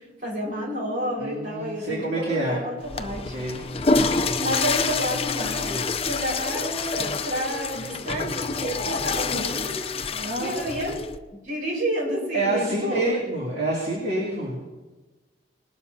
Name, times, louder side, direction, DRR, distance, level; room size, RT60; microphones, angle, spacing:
voice 1, 0.0-3.3 4.4-11.0 11.4-13.2, equal, 50° right, -3 dB, 5.1 m, -30 dB
voice 2, 1.2-2.6 3.3-3.6 10.1-10.6 12.3-14.6, right 2 dB, 70° right, -5 dB, 2.7 m, -27 dB
Water / Toilet flush, 2.8-11.2, left 4 dB, 35° left, 0.6 m, -27 dB
20.5 x 12.0 x 2.8 m, 1.2 s
head